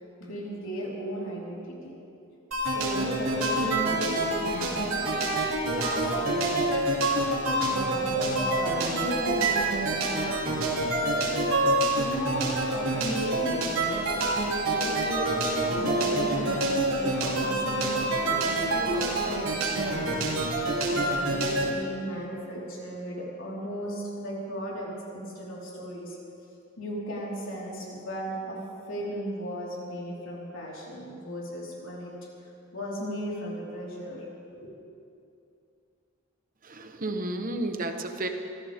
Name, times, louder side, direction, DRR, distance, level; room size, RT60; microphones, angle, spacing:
voice 1, 0.2-1.9 2.6-5.2 5.7-6.3 7.7-10.5 10.9-11.5 11.9-14.2 14.8-26.2 26.8-28.6 28.9-32.1 32.7-34.2 34.5-34.6, equal, 65° left, -5 dB, 4.3 m, -36 dB
sound 1, 2.5-21.7, right 2 dB, 90° right, 3.2 m, -27 dB
voice 2, 36.6-38.3, right 1 dB, 40° right, 6 dB, 1.2 m, -32 dB
24.5 x 15.5 x 3.7 m, 2.6 s
head